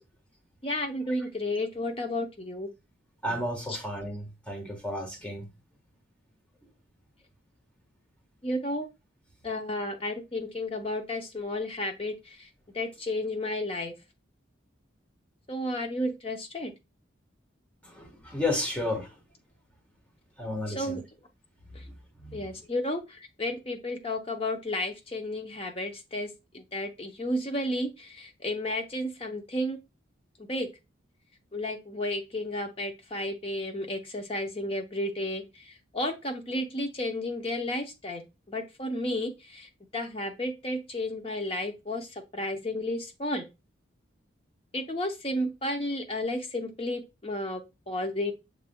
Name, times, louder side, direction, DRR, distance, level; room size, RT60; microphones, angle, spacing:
voice 1, 0.6-2.7 3.7-3.8 8.4-8.9 9.4-12.5 12.7-13.9 15.5-16.7 20.7-21.0 21.7-21.8 22.3-29.8 30.4-30.7 31.5-38.2 38.5-43.5 44.7-48.3, left 1 dB, 30° left, 0.7 m, -32 dB
voice 2, 3.2-5.5 17.8-19.2 20.4-21.0 21.8-21.9 22.2-22.4, left 1 dB, 5° left, 1.3 m, -32 dB
6.4 x 3.6 x 2.2 m
head